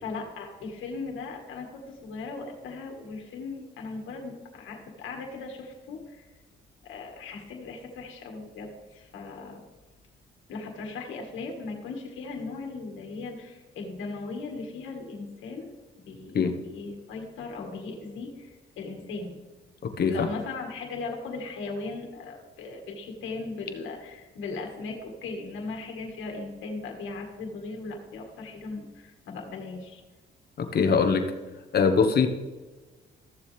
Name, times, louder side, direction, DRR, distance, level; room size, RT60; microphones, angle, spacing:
voice 1, 0.0-6.3 6.8-9.6 10.5-16.4 16.6-19.4 20.0-30.0 31.0-31.1, left 3 dB, 80° left, 1 dB, 1.9 m, -38 dB
voice 2, 19.8-20.3 30.6-31.3 31.7-32.3, left 5 dB, 55° left, 6 dB, 1.3 m, -22 dB
14.0 x 7.2 x 3.5 m, 1.2 s
cardioid pair, 90°, 20 cm